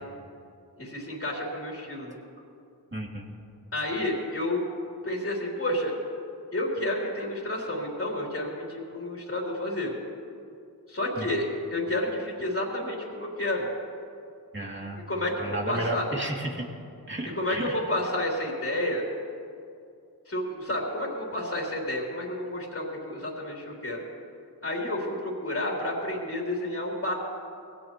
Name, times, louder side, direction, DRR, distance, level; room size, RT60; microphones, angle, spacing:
voice 1, 0.8-2.2 3.7-4.6 5.0-5.9 6.5-9.9 10.9-13.7 15.1-16.0 17.3-19.1 20.3-24.0 24.6-27.1, left 1 dB, 35° left, -3 dB, 3.3 m, -30 dB
voice 2, 2.9-3.3 11.2-11.3 14.5-15.1 15.4-16.7 17.1-17.8, right 1 dB, 30° right, -1 dB, 2.7 m, -33 dB
21.0 x 17.0 x 3.0 m, 2.5 s
cardioid pair, 55°, 39 cm